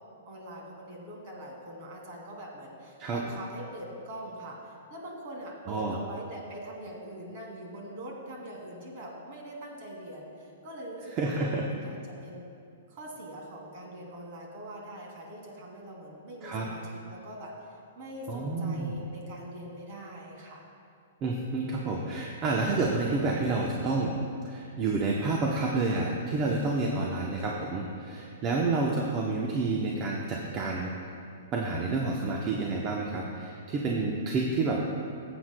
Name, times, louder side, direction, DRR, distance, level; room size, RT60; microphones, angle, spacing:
voice 1, 0.3-12.4 12.9-17.5 18.0-20.6, right 1 dB, 50° right, -1 dB, 2.4 m, -43 dB
voice 2, 5.7-6.0 11.1-11.7 16.4-16.7 18.3-19.0 21.2-24.2 24.4-30.9 31.5-34.8, right 3 dB, 30° right, -1 dB, 0.8 m, -29 dB
17.0 x 7.9 x 2.2 m, 2.5 s
hypercardioid pair, 135°, 0 cm